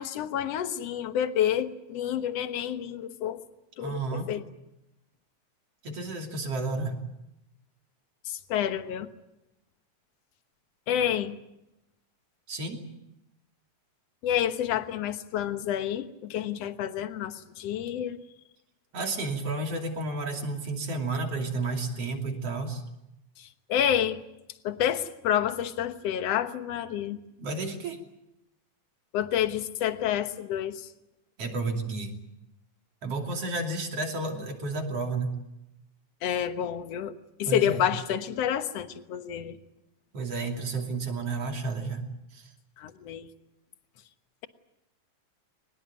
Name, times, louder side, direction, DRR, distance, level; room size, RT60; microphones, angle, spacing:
voice 1, 0.0-3.4 3.8-4.4 8.3-9.1 10.9-11.4 14.2-18.2 23.4-24.2 24.6-27.2 29.1-30.9 36.2-37.1 37.4-39.6 42.8-43.3, left 10 dB, 65° left, 9 dB, 2.2 m, -29 dB
voice 2, 3.8-4.3 5.8-7.0 12.5-12.8 18.9-22.8 27.4-28.0 31.4-32.1 33.0-35.3 37.5-37.9 40.1-42.0 42.3-42.5, right 3 dB, 55° right, 3 dB, 3.8 m, -31 dB
23.0 x 21.0 x 9.3 m, 0.89 s
omnidirectional pair, 3.4 m